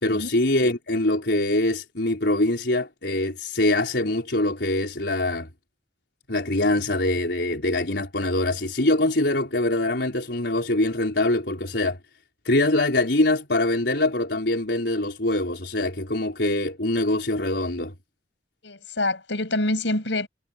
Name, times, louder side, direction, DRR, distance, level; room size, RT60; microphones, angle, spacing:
voice 1, 0.0-5.5 6.3-12.0 12.4-17.9, left 2 dB, 70° left, 4.5 m, -23 dB
voice 2, 18.6-20.3, left 2 dB, 90° left, 6.1 m, -26 dB
head